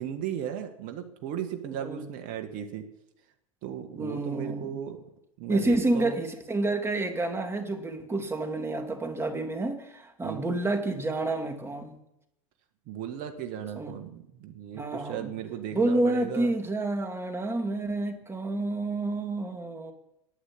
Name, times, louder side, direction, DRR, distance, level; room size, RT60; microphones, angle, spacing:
voice 1, 0.0-2.9 3.6-5.0 5.4-6.2 10.2-10.4 12.9-16.5, right 9 dB, 50° right, 6 dB, 1.9 m, -36 dB
voice 2, 3.9-4.7 5.5-11.9 13.7-13.9 14.7-15.3 15.7-19.9, right 2 dB, 15° right, 5 dB, 2.6 m, -29 dB
11.5 x 8.6 x 9.9 m, 0.83 s
hypercardioid pair, 90°, 18 cm